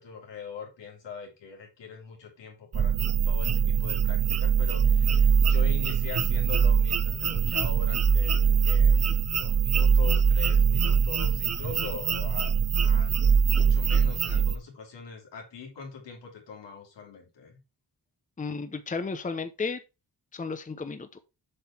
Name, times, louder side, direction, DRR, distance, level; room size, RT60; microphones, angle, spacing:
voice 1, 0.0-2.9 3.2-13.2 13.5-17.6, left 5 dB, 85° left, 3.3 m, -42 dB
sound 1, 2.7-14.5, right 6 dB, 35° right, 0.8 m, -23 dB
voice 2, 18.4-19.8 20.3-21.2, left 4 dB, 20° left, 0.8 m, -33 dB
7.8 x 5.5 x 4.4 m
wide cardioid pair, 120°, 42 cm